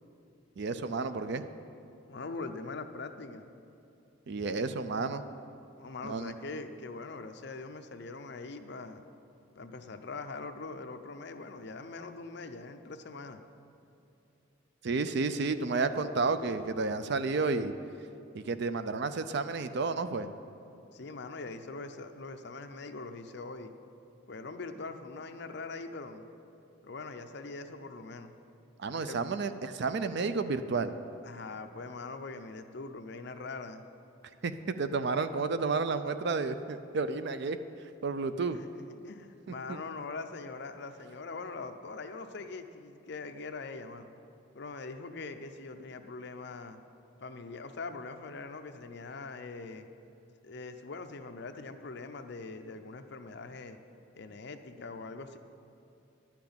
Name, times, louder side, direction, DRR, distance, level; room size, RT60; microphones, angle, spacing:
voice 1, 0.6-1.4 4.3-5.2 6.0-6.3 14.8-17.7 18.3-20.3 28.8-30.9 34.4-37.6 38.0-38.6 39.7-39.8, right 4 dB, 55° right, 11 dB, 0.5 m, -31 dB
voice 2, 2.1-3.5 5.8-9.0 9.6-13.4 20.9-23.7 24.3-26.3 26.8-28.3 29.0-29.2 31.2-33.8 38.5-44.1 44.5-46.8 47.2-49.9 50.4-53.8 54.2-55.4, left 3 dB, 55° left, 7 dB, 0.6 m, -42 dB
11.0 x 6.0 x 8.6 m, 2.7 s
head